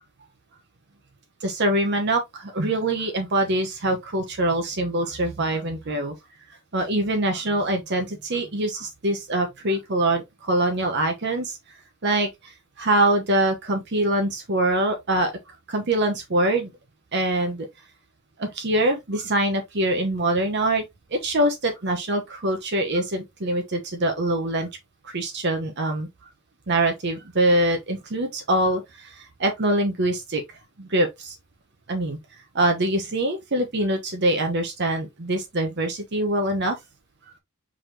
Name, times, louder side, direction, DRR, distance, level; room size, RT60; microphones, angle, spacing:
voice 1, 1.4-6.1 6.7-11.8 12.0-15.3 15.7-16.7 17.1-17.7 18.4-20.8 21.1-24.7 25.0-26.1 26.7-30.4 30.8-31.4 31.9-32.2 32.5-36.8, right 1 dB, 55° right, 0.9 m, -24 dB
4.9 x 3.9 x 2.7 m
head